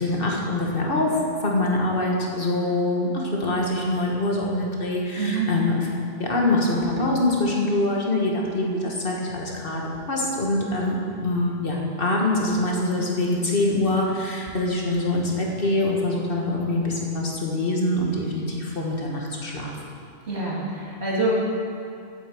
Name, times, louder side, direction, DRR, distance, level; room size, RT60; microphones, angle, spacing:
voice 1, 0.0-5.9 6.2-19.7, left 2 dB, 60° left, -2 dB, 1.8 m, -24 dB
voice 2, 5.2-5.5 20.2-21.3, right 3 dB, 75° right, -5 dB, 2.7 m, -26 dB
8.9 x 8.4 x 7.7 m, 2.5 s
omnidirectional pair, 1.1 m